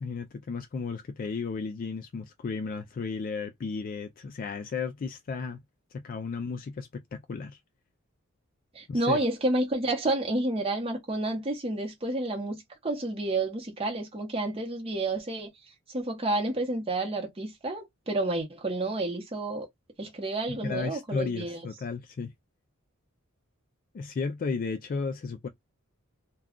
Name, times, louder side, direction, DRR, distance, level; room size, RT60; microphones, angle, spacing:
voice 1, 0.0-5.6 5.9-7.6 8.9-9.2 20.5-22.3 23.9-25.5, left 4 dB, 40° left, 0.3 m, -34 dB
voice 2, 8.7-15.5 15.9-19.7 20.0-21.6, right 2 dB, 25° right, 0.9 m, -30 dB
2.3 x 2.3 x 3.6 m
head